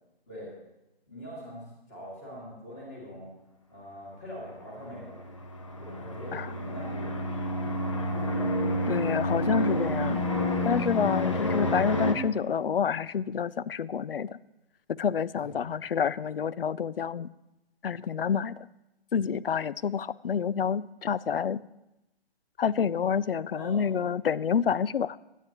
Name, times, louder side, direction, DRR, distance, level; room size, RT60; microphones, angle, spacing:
voice 1, 1.1-3.3 3.7-5.3 5.8-7.8 8.2-8.7 15.4-15.7 23.5-23.8, equal, 15° left, -4 dB, 2.3 m, -44 dB
sound 1, 4.8-12.1, left 1 dB, 30° left, 0.9 m, -29 dB
voice 2, 8.9-10.2 10.6-14.4 14.9-17.3 17.8-18.7 19.1-21.7 22.6-25.2, left 7 dB, 65° left, 20 dB, 0.4 m, -28 dB
20.0 x 9.1 x 3.0 m, 0.94 s
hypercardioid pair, 175°, 31 cm